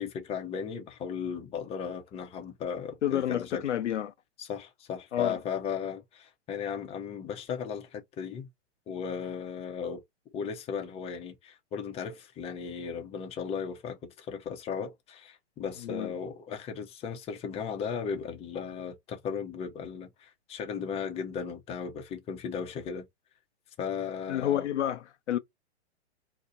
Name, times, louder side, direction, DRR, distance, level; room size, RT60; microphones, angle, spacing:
voice 1, 0.0-3.6 4.4-8.5 8.9-10.0 10.3-23.1 23.8-24.7, left 6 dB, 15° left, 0.6 m, -36 dB
voice 2, 3.0-4.1 5.1-5.4 15.8-16.1 24.3-25.4, left 11 dB, 85° left, 0.6 m, -29 dB
2.7 x 2.1 x 3.8 m
hypercardioid pair, 120°, 34 cm